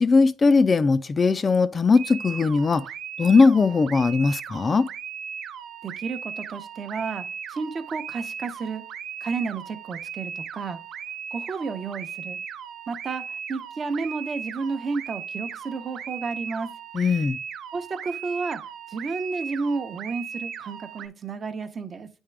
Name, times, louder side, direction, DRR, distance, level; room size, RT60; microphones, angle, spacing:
voice 1, 0.0-2.8 3.2-4.9 16.9-17.4, left 4 dB, 35° left, 0.4 m, -19 dB
sound 1, 1.9-21.1, right 7 dB, 75° right, 0.4 m, -37 dB
voice 2, 5.8-8.8 9.2-10.8 11.3-12.4 12.9-16.7 17.7-18.6 18.9-22.1, right 4 dB, 45° right, 0.7 m, -31 dB
9.1 x 3.6 x 3.3 m
cardioid pair, 90°, 0 cm